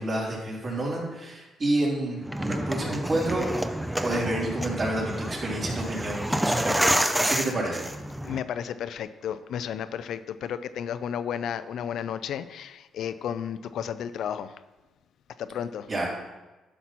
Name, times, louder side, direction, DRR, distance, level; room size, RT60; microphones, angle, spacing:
voice 1, 0.0-3.5 4.0-7.9 15.9-16.1, right 1 dB, 45° right, -4 dB, 3.4 m, -29 dB
sound 1, 2.2-8.4, right 1 dB, 5° right, 0.6 m, -28 dB
voice 2, 8.3-14.5 15.4-15.9, left 8 dB, 70° left, 12 dB, 0.4 m, -33 dB
11.5 x 5.9 x 4.2 m, 1.1 s
cardioid pair, 90°, 0 cm